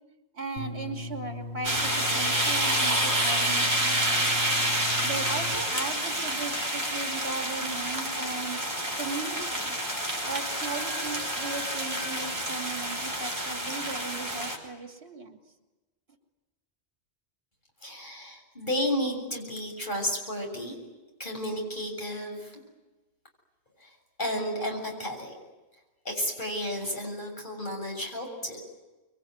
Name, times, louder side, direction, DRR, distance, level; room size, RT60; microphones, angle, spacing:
voice 1, 0.3-4.5 5.0-8.6 9.0-9.8 10.2-15.4, right 3 dB, 65° right, 5 dB, 3.0 m, -37 dB
sound 1, 0.6-5.6, left 2 dB, 70° left, 1.9 m, -38 dB
sound 2, 1.6-14.6, right 1 dB, 15° right, 5.1 m, -28 dB
voice 2, 17.8-20.8 21.2-22.6 23.8-25.3 26.0-28.6, equal, 50° left, 1 dB, 7.5 m, -32 dB
26.0 x 23.0 x 9.6 m, 1.1 s
omnidirectional pair, 1.1 m